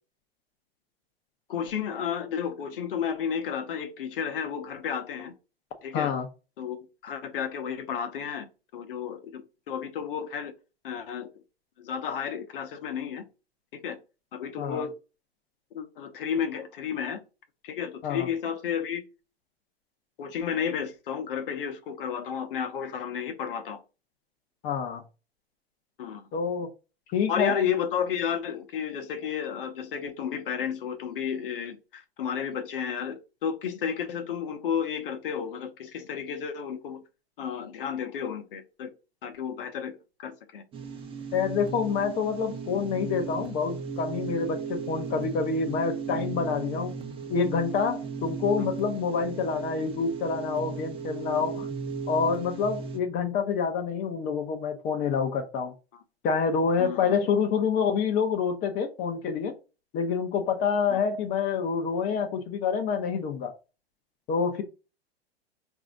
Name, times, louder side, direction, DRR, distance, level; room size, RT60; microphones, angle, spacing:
voice 1, 1.5-5.3 5.8-6.1 6.6-6.8 7.0-8.5 8.7-10.5 10.8-11.3 11.8-13.2 13.7-14.0 14.3-14.9 15.7-17.2 17.6-19.0 20.2-23.8 26.0-26.2 27.3-37.0 37.4-38.9 39.2-40.6 56.8-57.1 60.9-61.0, left 7 dB, 60° left, 0.9 m, -32 dB
voice 2, 5.9-6.3 14.6-14.8 18.0-18.3 24.6-25.0 26.3-26.7 27.1-27.6 41.3-46.9 47.3-51.7 52.1-55.7 56.2-59.5 59.9-63.5 64.3-64.6, left 6 dB, 30° left, 0.7 m, -27 dB
sound 1, 40.7-53.0, right 5 dB, 15° right, 0.8 m, -36 dB
4.9 x 2.7 x 3.6 m
figure-of-eight pair, 105°, 31 cm